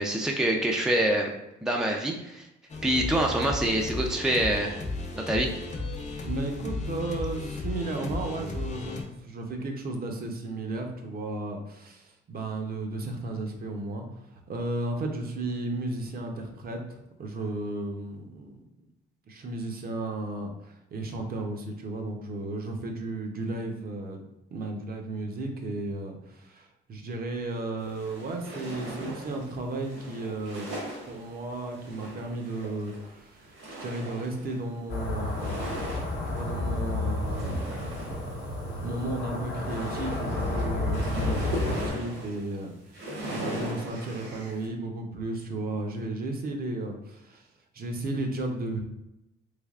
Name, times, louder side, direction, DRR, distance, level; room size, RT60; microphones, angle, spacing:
voice 1, 0.0-1.3 1.6-2.4 2.8-4.7 5.1-5.5, right 1 dB, 5° right, 1 dB, 0.4 m, -25 dB
sound 1, 2.7-9.0, left 3 dB, 35° left, 0.7 m, -34 dB
voice 2, 6.2-14.1 14.3-18.6 19.3-24.2 24.5-30.7 31.1-35.6 36.3-47.5 47.7-48.8, right 2 dB, 50° right, 2 dB, 0.6 m, -34 dB
sound 2, 27.9-34.8 35.2-36.5 36.9-39.1 39.4-42.6 42.9-44.7, right 1 dB, 85° right, 1.3 m, -39 dB
sound 3, 34.9-41.9, left 2 dB, 85° left, 0.8 m, -31 dB
3.4 x 3.3 x 2.4 m, 0.90 s
cardioid pair, 90°, 20 cm